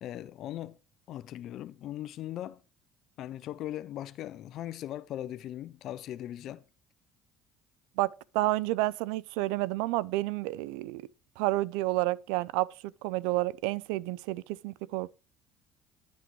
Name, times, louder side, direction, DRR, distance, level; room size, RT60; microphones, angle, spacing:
voice 1, 0.0-0.8 1.1-2.6 3.2-6.6, left 12 dB, 65° left, 0.4 m, -39 dB
voice 2, 8.0-11.0 11.4-15.1, right 18 dB, 85° right, 0.3 m, -30 dB
10.5 x 6.1 x 3.1 m
supercardioid pair, 85°, 0 cm